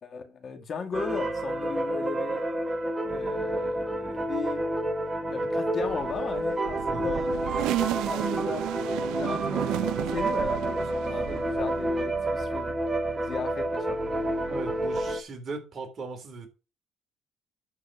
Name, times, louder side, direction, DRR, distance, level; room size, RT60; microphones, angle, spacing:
voice 1, 0.0-2.4 3.1-7.5 7.8-8.6 9.2-9.7 10.1-12.7 13.2-14.3, left 5 dB, 45° left, 2.2 m, -36 dB
sound 1, 0.9-15.2, right 1 dB, 20° right, 1.5 m, -29 dB
sound 2, 5.8-12.7 13.1-15.1, right 15 dB, 80° right, 0.7 m, -34 dB
voice 2, 6.9-7.2 14.5-16.5, right 4 dB, 40° right, 3.5 m, -38 dB
11.5 x 4.7 x 6.0 m
cardioid pair, 110°, 0 cm